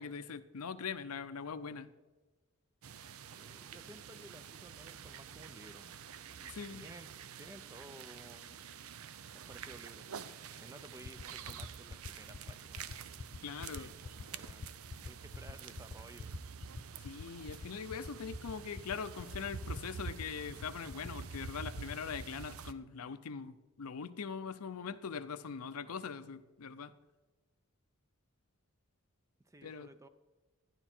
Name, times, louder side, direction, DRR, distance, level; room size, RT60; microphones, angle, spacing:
voice 1, 0.0-1.9 6.5-6.9 13.4-13.9 17.0-26.9 29.6-29.9, left 6 dB, 85° left, 12 dB, 0.6 m, -42 dB
sound 1, 2.8-22.7, right 7 dB, 70° right, 0.5 m, -48 dB
voice 2, 3.2-5.9 6.2-7.1 7.4-8.6 9.5-10.3 10.5-13.0 13.6-14.7 15.0-16.4 29.4-30.1, right 1 dB, 15° right, 11 dB, 0.5 m, -55 dB
sound 2, 11.0-22.3, left 4 dB, 40° left, 0.4 m, -44 dB
12.0 x 11.0 x 4.4 m, 1.2 s
head